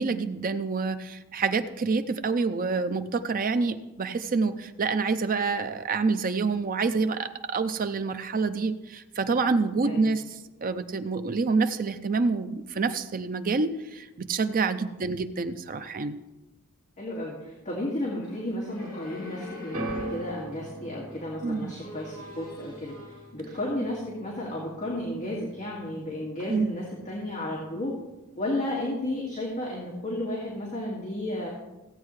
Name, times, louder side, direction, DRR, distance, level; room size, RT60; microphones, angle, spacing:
voice 1, 0.0-16.2 21.4-21.7 26.5-26.7, right 4 dB, 40° right, 9 dB, 0.5 m, -27 dB
voice 2, 9.8-10.2 17.0-28.0 28.4-31.5, left 1 dB, 35° left, -5 dB, 2.0 m, -33 dB
sound 1, 18.1-20.5 21.1-23.3, left 2 dB, 65° left, 3.0 m, -44 dB
sound 2, 19.7-26.0 26.3-26.9 27.7-27.8, right 1 dB, 75° right, 1.9 m, -41 dB
15.5 x 8.3 x 3.2 m, 1.0 s
head